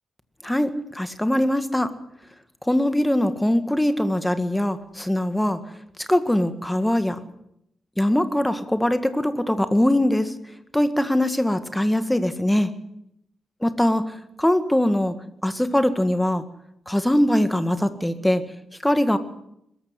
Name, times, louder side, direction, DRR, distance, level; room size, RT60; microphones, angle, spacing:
voice 1, 0.4-1.9 2.7-5.6 6.0-7.2 8.0-10.3 10.7-12.7 13.6-15.1 15.4-16.4 16.9-18.4 18.8-19.2, left 1 dB, 5° left, 10 dB, 1.8 m, -22 dB
22.0 x 14.0 x 9.6 m, 0.77 s
cardioid pair, 105°, 0 cm